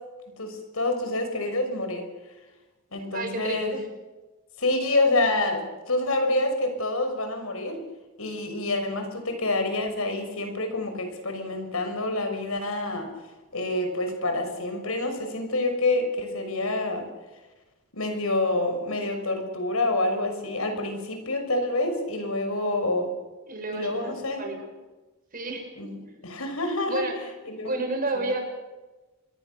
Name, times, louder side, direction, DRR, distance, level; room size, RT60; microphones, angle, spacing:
voice 1, 0.4-2.1 2.9-3.7 4.6-7.8 8.2-13.1 13.5-17.1 17.9-23.1 23.7-24.4 25.8-26.0 26.2-27.1 27.5-27.7, left 2 dB, 75° left, 6 dB, 5.9 m, -27 dB
voice 2, 3.1-3.9 23.5-24.1 24.4-24.6 25.3-25.7 26.8-27.2 27.6-28.4, right 2 dB, 40° right, 3 dB, 6.6 m, -30 dB
27.0 x 22.0 x 6.9 m, 1.2 s
head